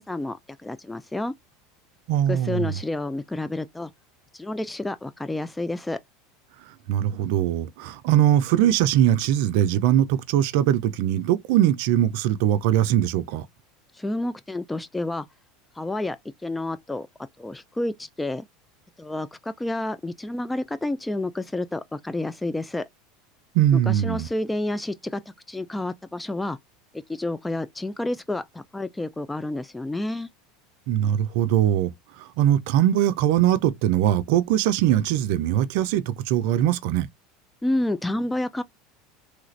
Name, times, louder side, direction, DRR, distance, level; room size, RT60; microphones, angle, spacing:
voice 1, 0.0-1.3 2.3-3.9 4.3-6.0 14.0-15.3 15.8-16.2 16.4-17.1 17.4-18.4 19.0-22.8 23.9-25.2 25.5-26.6 26.9-30.3 37.6-38.6, left 2 dB, 10° left, 0.3 m, -29 dB
voice 2, 2.1-2.8 6.7-13.5 23.5-24.3 30.9-31.9 32.2-37.1, right 11 dB, 70° right, 0.4 m, -21 dB
3.2 x 2.4 x 3.1 m
hypercardioid pair, 90°, 0 cm